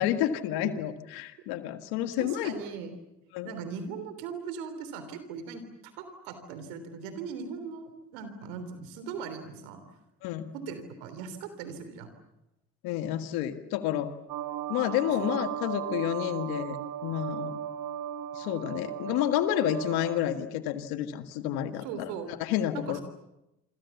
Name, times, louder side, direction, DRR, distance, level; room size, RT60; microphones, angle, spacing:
voice 1, 0.0-2.6 3.3-3.5 10.2-10.5 12.8-14.1 14.7-16.8 17.0-17.6 18.3-23.0, left 12 dB, 85° left, 9 dB, 1.7 m, -30 dB
voice 2, 2.0-2.9 3.4-9.8 10.5-12.1 21.8-22.3 22.7-23.0, right 6 dB, 90° right, 10 dB, 3.4 m, -39 dB
sound 1, 14.3-20.2, right 10 dB, 75° right, 1.5 m, -36 dB
28.0 x 24.5 x 7.2 m, 0.91 s
hypercardioid pair, 50°, 36 cm